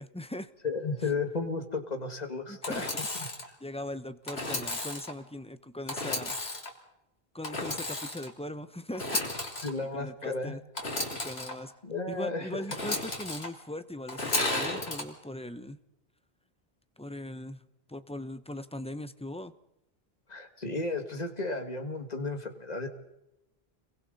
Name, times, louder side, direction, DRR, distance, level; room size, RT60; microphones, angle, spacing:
voice 1, 0.0-0.5 2.5-2.9 3.6-6.4 7.3-9.1 9.9-10.6 11.2-11.7 12.1-15.8 17.0-17.6 17.9-19.5, left 1 dB, 5° left, 10 dB, 0.8 m, -40 dB
voice 2, 0.6-2.9 9.6-10.5 11.8-12.6 20.3-22.9, left 3 dB, 40° left, 5 dB, 2.2 m, -33 dB
Engine / Sawing, 2.6-3.5 4.3-5.1 5.9-6.7 7.4-8.3 8.9-9.7 10.8-11.5 12.7-13.5 14.1-15.0, left 2 dB, 85° left, 3.2 m, -33 dB
29.5 x 22.5 x 4.2 m, 0.86 s
omnidirectional pair, 1.0 m